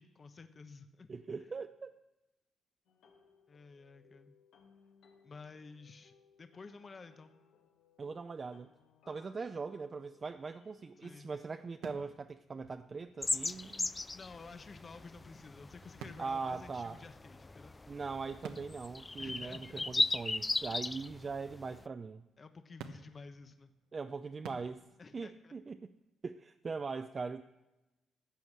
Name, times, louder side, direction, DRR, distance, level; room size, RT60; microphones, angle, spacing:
voice 1, 0.0-1.1 3.5-4.3 5.2-6.1 6.4-7.3 11.0-11.3 14.1-17.7 19.2-19.9 20.7-20.8 22.4-23.7 25.0-25.5, left 4 dB, 35° left, 8 dB, 0.9 m, -52 dB
voice 2, 1.1-1.9 8.0-8.7 9.1-13.9 16.2-17.0 17.9-22.2 23.9-24.8 25.1-25.9 26.2-27.4, right 4 dB, 35° right, 9 dB, 0.5 m, -41 dB
sound 1, 2.9-11.9, left 6 dB, 80° left, 2.3 m, -66 dB
sound 2, 10.1-10.4 10.8-10.9 11.8-13.8 15.8-17.6 17.9-18.0 18.4-21.3 21.7-22.5 22.8-26.0, right 7 dB, 85° right, 1.0 m, -54 dB
sound 3, 13.2-21.8, left 2 dB, 20° left, 0.3 m, -37 dB
14.0 x 8.1 x 7.4 m, 1.0 s
cardioid pair, 90°, 0 cm